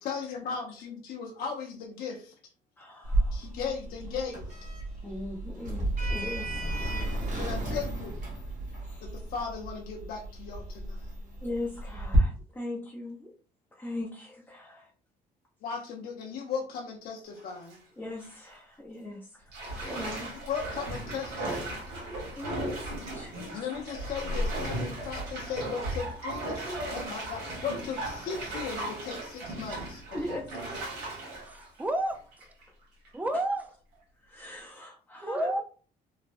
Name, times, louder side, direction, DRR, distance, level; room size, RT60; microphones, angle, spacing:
voice 1, 0.0-2.3 3.3-4.5 7.3-8.2 9.0-11.1 15.6-17.8 20.5-21.9 23.5-30.0, left 6 dB, 65° left, 0 dB, 0.6 m, -37 dB
voice 2, 2.8-3.6 5.0-5.8 6.1-6.6 7.7-7.8 8.8-9.1 11.4-13.3 13.7-14.9 18.0-20.3 22.3-23.3 30.1-30.4 33.3-33.4 34.2-35.6, left 2 dB, 10° left, -4 dB, 0.7 m, -39 dB
Sliding door, 3.0-12.2, right 1 dB, 45° right, 1.2 m, -33 dB
Bathtub (filling or washing), 17.3-17.8 18.2-18.3 19.5-32.6 33.1-33.2, right 1 dB, 90° right, 1.3 m, -36 dB
voice 3, 31.4-32.2 33.1-33.6 35.2-35.6, right 1 dB, 10° right, 8 dB, 0.3 m, -30 dB
3.2 x 2.1 x 2.5 m, 0.39 s
cardioid pair, 110°, 17 cm